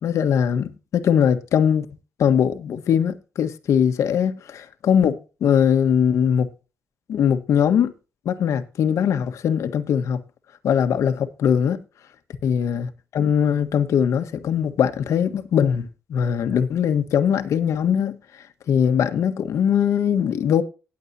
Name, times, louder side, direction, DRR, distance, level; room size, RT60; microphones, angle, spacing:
voice 1, 0.0-1.9 2.2-6.5 7.1-7.9 8.2-10.2 10.6-11.8 12.4-18.2 18.7-20.6, left 8 dB, 75° left, 1.4 m, -21 dB
19.0 x 7.4 x 2.9 m
cardioid pair, 115°, 5 cm